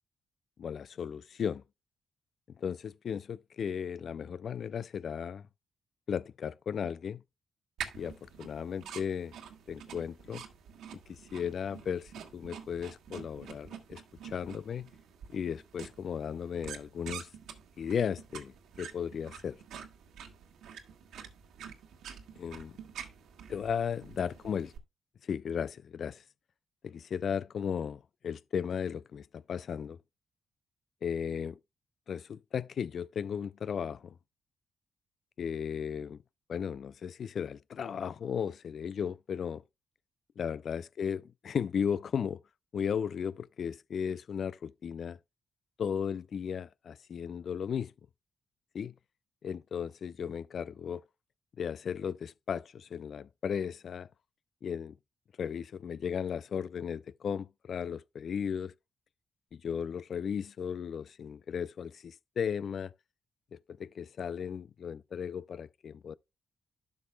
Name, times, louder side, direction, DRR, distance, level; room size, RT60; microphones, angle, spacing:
voice 1, 0.6-1.6 2.6-5.5 6.1-7.2 7.9-9.3 9.7-10.4 11.1-14.9 15.3-17.3 17.8-19.6 22.4-22.7 23.5-24.7 25.2-26.2 26.8-30.0 31.0-31.6 32.1-34.1 35.4-36.2 36.5-39.6 40.4-42.4 42.7-45.2 45.8-47.9 48.7-48.9 49.4-51.0 51.6-54.1 54.6-55.0 55.4-58.7 59.5-62.9 63.5-66.1, left 7 dB, 60° left, 0.5 m, -35 dB
sound 1, 7.8-24.8, right 8 dB, 75° right, 1.6 m, -47 dB
12.0 x 6.1 x 2.3 m
hypercardioid pair, 40°, 0 cm